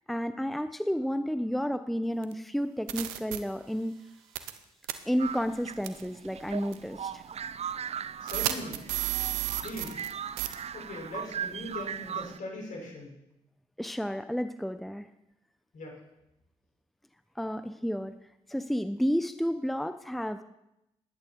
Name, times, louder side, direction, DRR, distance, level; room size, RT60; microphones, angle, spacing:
voice 1, 0.0-3.9 5.0-7.3 13.8-15.1 17.4-18.1 18.5-20.4, equal, ahead, 10 dB, 0.9 m, -31 dB
sound 1, 2.2-2.3 2.9-3.4 4.4-4.6 4.8-4.9 5.8-6.0 6.7-6.8 8.3-10.1 10.4-10.5, right 15 dB, 85° right, 0.8 m, -31 dB
sound 2, 5.2-12.4, right 8 dB, 45° right, 0.5 m, -39 dB
voice 2, 8.2-8.8 9.6-10.0 10.7-13.1 15.7-16.0, left 2 dB, 60° left, -1 dB, 6.2 m, -40 dB
18.0 x 11.0 x 4.6 m, 0.87 s
hypercardioid pair, 45°, 15 cm